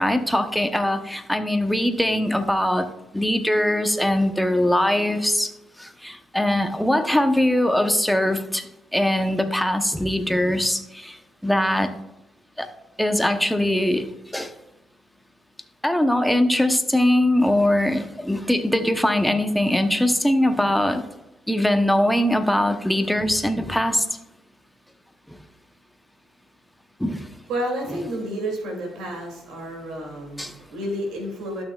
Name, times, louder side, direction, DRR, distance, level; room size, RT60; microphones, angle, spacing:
voice 1, 0.0-2.9 3.1-5.5 5.8-11.2 11.4-11.9 12.6-12.7 13.0-14.1 14.3-14.5 15.8-21.0 21.5-24.1 27.0-27.3 30.4-30.5, left 1 dB, 5° left, 7 dB, 0.8 m, -21 dB
voice 2, 27.5-31.6, right 1 dB, 90° right, 1 dB, 2.6 m, -30 dB
12.0 x 6.1 x 2.4 m, 0.96 s
cardioid pair, 90°, 0 cm